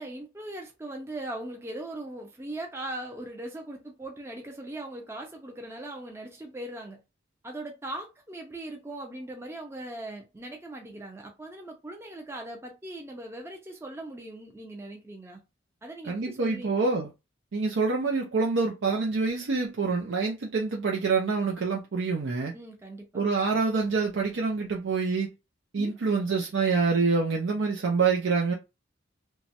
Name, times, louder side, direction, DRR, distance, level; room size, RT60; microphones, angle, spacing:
voice 1, 0.0-7.0 7.4-15.4 15.8-16.7 22.5-23.1 25.8-25.9, right 1 dB, 15° right, 0.4 m, -39 dB
voice 2, 16.0-17.1 17.5-22.6 23.1-25.3 25.7-28.5, right 4 dB, 80° right, 0.5 m, -26 dB
3.0 x 2.3 x 2.7 m
head